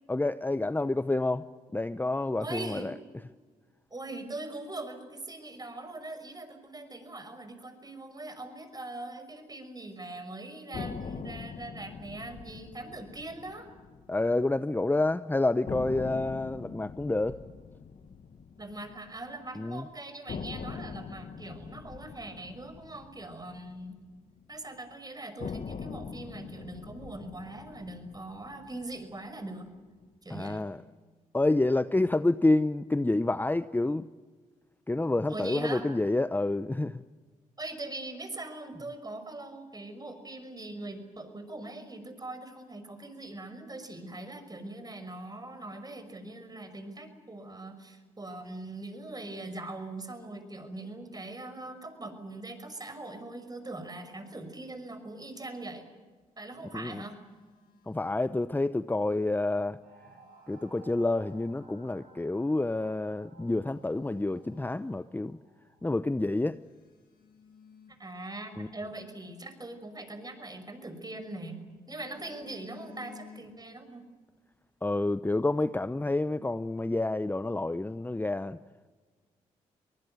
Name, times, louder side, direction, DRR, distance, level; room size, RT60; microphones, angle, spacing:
voice 1, 0.1-1.5 1.7-2.9 14.1-17.4 19.6-19.8 30.3-30.8 31.3-34.0 34.9-37.0 56.7-57.0 57.9-59.8 60.5-65.4 65.8-66.6 68.6-68.7 74.8-78.6, left 2 dB, 10° left, 14 dB, 0.8 m, -28 dB
voice 2, 2.4-2.9 3.9-13.7 18.6-24.0 24.5-29.7 30.2-30.7 35.3-35.9 37.6-55.8 56.4-57.2 68.0-74.1, right 2 dB, 25° right, 9 dB, 5.9 m, -41 dB
sound 1, 10.7-14.8 15.1-15.2 15.7-19.7 20.3-24.6 25.4-29.8, left 5 dB, 50° left, 1.5 m, -43 dB
Telephone, 56.1-58.5 59.8-61.7 62.3-62.5 63.0-63.1 63.5-65.5 65.8-65.9 66.4-68.8 70.3-71.3 71.7-73.8 74.1-74.4, left 5 dB, 75° left, 5.4 m, -57 dB
sound 2, 59.8-65.9, right 3 dB, 60° right, 6.8 m, -58 dB
24.5 x 20.0 x 9.4 m, 1.4 s
hypercardioid pair, 50°, 16 cm